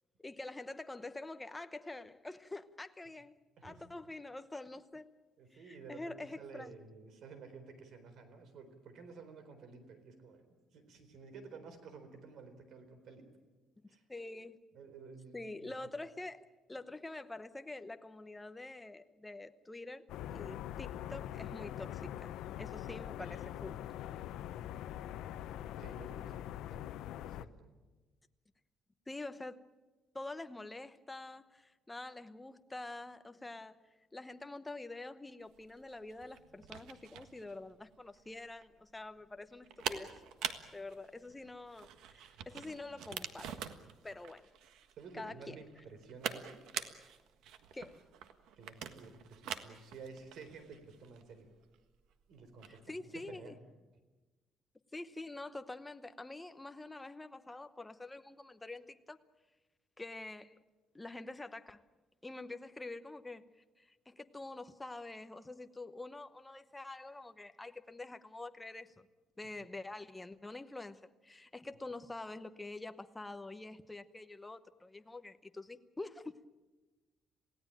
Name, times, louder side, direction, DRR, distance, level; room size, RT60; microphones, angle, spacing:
voice 1, 0.2-3.4 3.6-5.1 5.5-6.8 14.1-14.6 15.3-23.9 29.1-29.6 30.1-33.8 34.1-40.2 40.7-43.6 44.0-44.5 45.1-45.6 47.7-48.0 52.7-53.6 54.9-59.2 60.0-60.6 60.9-61.8 62.2-69.1 69.4-76.5, left 2 dB, 10° left, 0.9 m, -46 dB
voice 2, 3.6-3.9 5.4-13.3 13.9-14.0 14.7-15.7 24.9-26.4 26.7-27.0 27.2-27.7 45.0-46.6 48.6-51.5 52.3-53.6, right 4 dB, 60° right, 4.0 m, -52 dB
sound 1, 20.1-27.5, left 12 dB, 85° left, 0.8 m, -43 dB
sound 2, 35.5-52.9, right 9 dB, 85° right, 1.5 m, -45 dB
28.0 x 17.0 x 9.1 m
cardioid pair, 150°, 0 cm